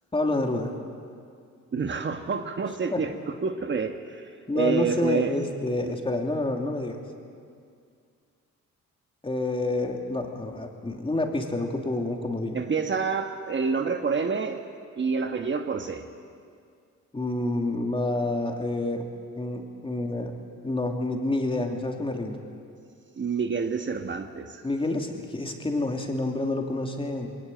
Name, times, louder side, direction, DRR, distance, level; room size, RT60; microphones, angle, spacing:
voice 1, 0.1-0.7 2.9-3.0 4.5-7.0 9.2-12.6 17.1-19.0 19.4-20.3 20.6-22.4 24.6-27.3, left 2 dB, 15° left, 2 dB, 2.8 m, -28 dB
voice 2, 1.7-5.4 5.8-6.0 12.5-14.6 15.0-16.0 23.2-24.6, right 5 dB, 40° right, 6 dB, 1.4 m, -28 dB
21.0 x 18.0 x 9.0 m, 2.3 s
cardioid pair, 90°, 30 cm